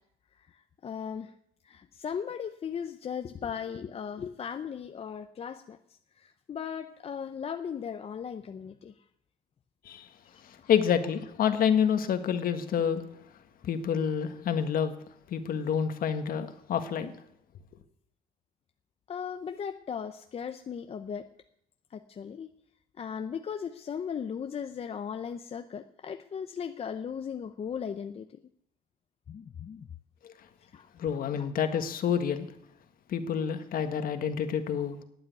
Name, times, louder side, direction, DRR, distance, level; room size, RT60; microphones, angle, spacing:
voice 1, 0.4-1.3 1.6-8.9 10.2-10.7 19.1-21.3 21.9-22.5 23.0-28.2 29.3-29.9 30.7-30.9 31.4-31.5, left 7 dB, 35° left, 0.7 m, -37 dB
voice 2, 10.7-13.0 13.6-14.9 15.3-17.1 30.9-32.5 33.1-35.0, left 8 dB, 55° left, 1.6 m, -28 dB
12.0 x 8.7 x 9.6 m
cardioid pair, 110°, 17 cm